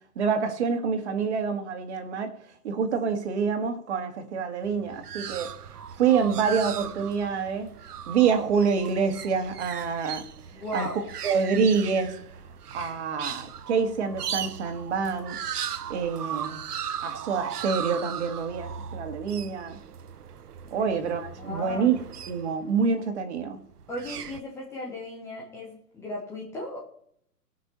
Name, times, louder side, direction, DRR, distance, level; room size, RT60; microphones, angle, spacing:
voice 1, 0.2-2.3 2.6-5.5 6.0-7.7 8.1-10.2 10.7-12.2 12.7-15.4 15.9-16.7 17.0-19.8 20.7-22.0 22.3-23.6, right 6 dB, 45° right, 6 dB, 2.2 m, -26 dB
sound 1, 4.6-22.8 23.7-24.4, right 8 dB, 70° right, 1.0 m, -38 dB
voice 2, 10.5-11.0 21.4-21.9 23.9-26.8, left 1 dB, 5° left, -2 dB, 0.9 m, -36 dB
17.0 x 6.2 x 6.9 m, 0.68 s
hypercardioid pair, 155°, 47 cm